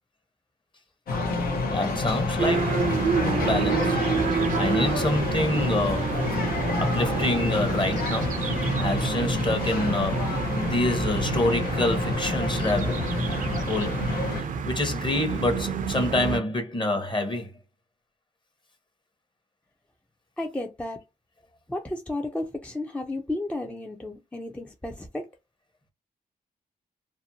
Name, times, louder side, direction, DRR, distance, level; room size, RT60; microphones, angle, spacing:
sound 1, 1.1-14.4, left 3 dB, 85° left, 0.7 m, -28 dB
voice 1, 1.7-4.0 4.6-6.2 6.8-8.4 8.8-13.0 13.7-14.0 14.3-17.5, left 1 dB, 30° left, 0.8 m, -27 dB
sound 2, 2.4-16.4, right 6 dB, 60° right, 0.4 m, -29 dB
voice 2, 20.4-21.0 21.7-25.3, left 2 dB, 10° left, 0.4 m, -33 dB
2.6 x 2.1 x 2.7 m
cardioid pair, 60°, 15 cm